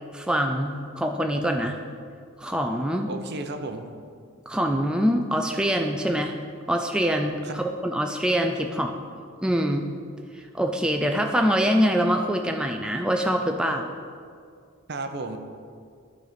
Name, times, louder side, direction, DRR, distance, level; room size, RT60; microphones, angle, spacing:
voice 1, 0.1-1.8 2.4-3.1 4.5-6.3 6.7-8.9 9.4-9.9 10.3-13.9, equal, 5° right, 3 dB, 0.3 m, -24 dB
voice 2, 3.1-3.9 7.4-7.6 14.9-15.4, right 2 dB, 50° right, 6 dB, 0.6 m, -33 dB
12.0 x 4.1 x 5.0 m, 2.2 s
head